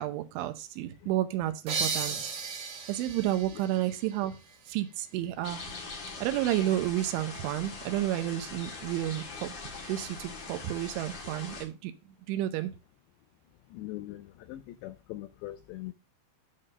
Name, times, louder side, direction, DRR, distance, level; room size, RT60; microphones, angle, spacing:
voice 1, 0.0-2.3 2.9-4.4 4.7-5.6 6.2-9.5 9.9-12.7, right 13 dB, 80° right, 3.0 m, -31 dB
sound 1, 1.7-5.1, right 5 dB, 60° right, 1.9 m, -36 dB
sound 2, 5.4-11.7, left 3 dB, 65° left, 1.1 m, -42 dB
voice 2, 13.7-15.9, left 15 dB, 85° left, 2.4 m, -41 dB
9.3 x 4.0 x 6.4 m
omnidirectional pair, 5.7 m